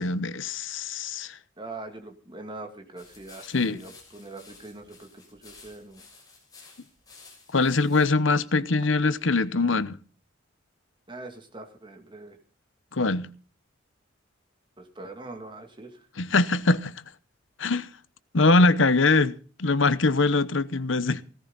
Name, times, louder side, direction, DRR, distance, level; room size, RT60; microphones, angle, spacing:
voice 1, 0.0-1.4 3.5-3.8 7.5-10.0 12.9-13.3 16.2-16.9 17.6-17.9 18.3-21.2, left 3 dB, 75° left, 0.9 m, -23 dB
voice 2, 1.6-6.0 11.1-12.4 14.8-16.0, right 2 dB, 25° right, 2.3 m, -42 dB
sound 1, 3.0-8.1, left 4 dB, 20° left, 6.4 m, -52 dB
17.0 x 14.0 x 4.0 m
head